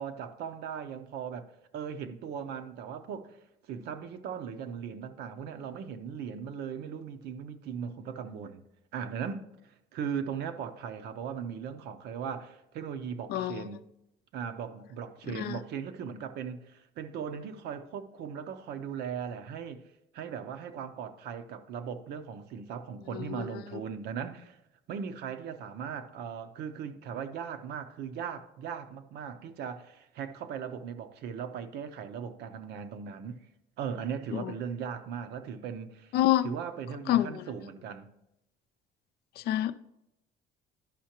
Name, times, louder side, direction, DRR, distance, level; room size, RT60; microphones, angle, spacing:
voice 1, 0.0-3.4 3.7-8.6 8.9-13.8 14.3-19.9 20.1-24.6 24.9-33.4 33.8-36.1 36.4-38.1, right 7 dB, 75° right, 0.7 m, -38 dB
voice 2, 13.3-13.6 15.3-15.6 23.1-23.4 34.3-34.5 36.1-36.5 37.1-37.4 39.4-39.7, left 13 dB, 70° left, 0.4 m, -27 dB
11.5 x 5.6 x 2.9 m
cardioid pair, 110°, 17 cm